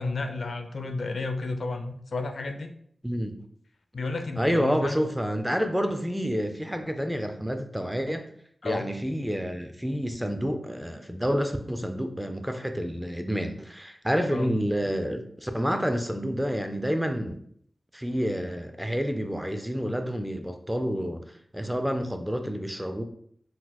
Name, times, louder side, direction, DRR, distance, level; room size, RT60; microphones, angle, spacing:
voice 1, 0.0-2.7 3.9-5.0 8.6-8.8 14.3-14.5, left 3 dB, 75° left, 6 dB, 0.4 m, -32 dB
voice 2, 3.0-3.4 4.4-8.3 8.6-17.4 17.9-23.0, equal, 5° right, 7 dB, 0.3 m, -29 dB
3.8 x 2.8 x 2.2 m, 0.64 s
wide cardioid pair, 95°, 0 cm